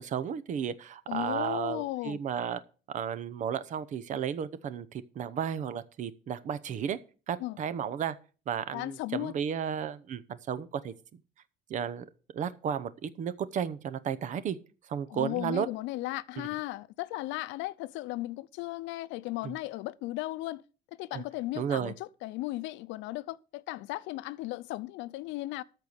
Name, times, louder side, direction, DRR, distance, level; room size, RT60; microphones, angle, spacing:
voice 1, 0.0-2.6 2.9-7.0 7.3-8.2 8.5-10.9 11.7-12.1 12.3-14.6 14.9-15.7 16.4-16.5 19.4-19.5 21.1-21.2 21.6-21.9, right 8 dB, 40° right, 0.8 m, -33 dB
voice 2, 1.1-2.2 7.4-7.6 8.7-9.4 15.1-20.6 21.0-25.6, left 18 dB, 90° left, 0.6 m, -36 dB
13.5 x 4.6 x 8.1 m
cardioid pair, 165°, 19 cm